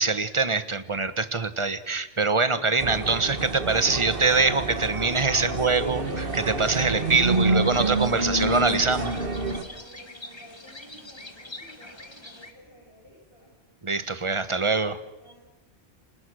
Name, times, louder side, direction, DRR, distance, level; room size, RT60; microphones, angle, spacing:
voice 1, 0.0-9.1 13.8-15.0, right 3 dB, 30° right, 12 dB, 1.3 m, -24 dB
sound 1, 2.8-9.6, right 3 dB, 55° right, 2.0 m, -28 dB
sound 2, 5.7-12.5, left 2 dB, 25° left, 2.0 m, -45 dB
voice 2, 9.6-13.5 15.2-15.4, equal, 55° left, -2 dB, 7.5 m, -52 dB
29.5 x 26.0 x 6.4 m, 1.1 s
omnidirectional pair, 1.1 m